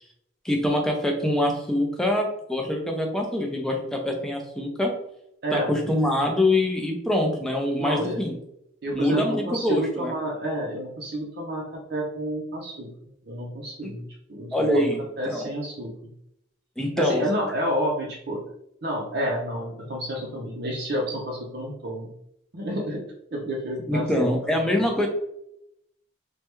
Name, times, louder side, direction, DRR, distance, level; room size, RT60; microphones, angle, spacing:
voice 1, 0.4-4.9 5.5-8.4 8.9-10.1 13.8-13.9 14.5-15.5 16.8-17.3 23.9-25.1, left 1 dB, 5° left, 0 dB, 0.4 m, -24 dB
voice 2, 5.4-5.7 7.8-8.2 8.8-12.9 13.3-14.9 15.2-15.9 17.0-18.4 18.8-22.1 22.5-23.0 23.3-24.4, equal, 55° right, -2 dB, 0.5 m, -30 dB
3.2 x 2.2 x 3.0 m, 0.77 s
head